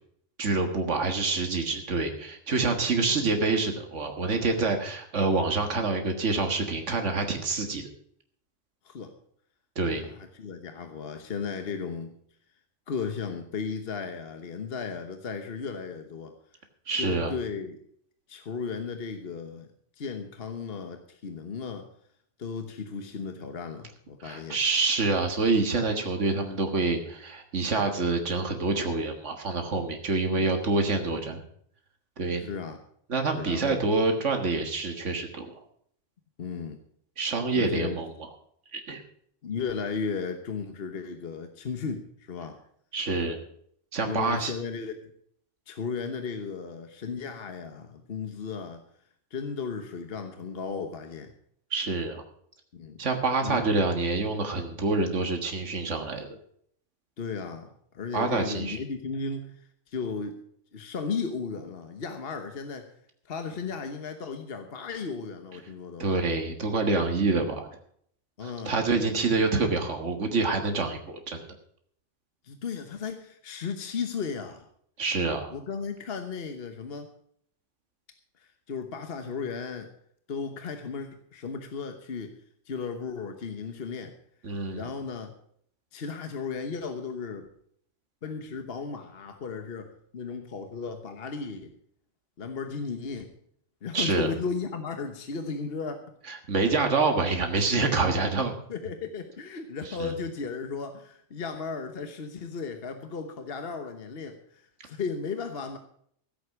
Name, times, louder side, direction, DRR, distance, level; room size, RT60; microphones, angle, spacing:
voice 1, 0.4-7.9 9.8-10.0 16.9-17.3 24.2-31.4 32.2-32.5 33.1-35.5 37.2-38.1 38.7-39.0 42.9-43.4 43.9-44.5 51.7-52.2 53.0-56.3 58.1-58.8 66.0-67.7 68.4-71.5 75.0-75.5 84.4-84.9 93.9-94.3 96.3-98.5 100.0-100.1, right 3 dB, 90° right, 5 dB, 1.9 m, -27 dB
voice 2, 9.9-12.2 12.9-16.3 16.9-17.8 18.3-19.7 20.0-21.9 22.4-24.6 30.3-30.5 32.4-32.8 33.3-33.9 36.4-36.8 37.5-38.0 39.4-42.6 44.0-45.1 45.7-48.8 49.3-51.3 52.7-53.0 53.4-53.7 57.2-60.4 60.7-62.9 63.2-66.1 68.4-68.8 72.4-74.7 75.5-77.1 78.4-79.9 80.3-82.4 82.7-84.1 84.7-85.3 85.9-87.5 88.2-91.7 92.4-93.4 93.8-96.0 96.8-96.9 98.2-98.3 98.7-105.8, left 5 dB, 55° left, 6 dB, 1.3 m, -35 dB
15.5 x 8.3 x 6.0 m, 0.64 s
omnidirectional pair, 1.2 m